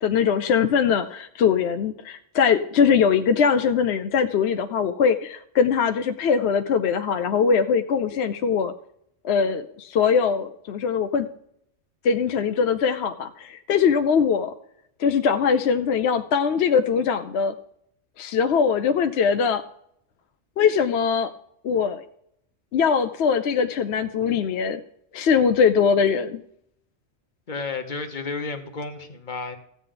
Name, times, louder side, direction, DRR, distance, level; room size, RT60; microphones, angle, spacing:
voice 1, 0.0-8.7 9.2-11.3 12.0-14.5 15.0-17.5 18.2-19.6 20.6-21.3 21.6-22.0 22.7-24.8 25.1-26.4, left 6 dB, 70° left, 0.9 m, -21 dB
voice 2, 27.5-29.6, left 4 dB, 45° left, 1.3 m, -32 dB
14.5 x 8.3 x 3.8 m
omnidirectional pair, 1.2 m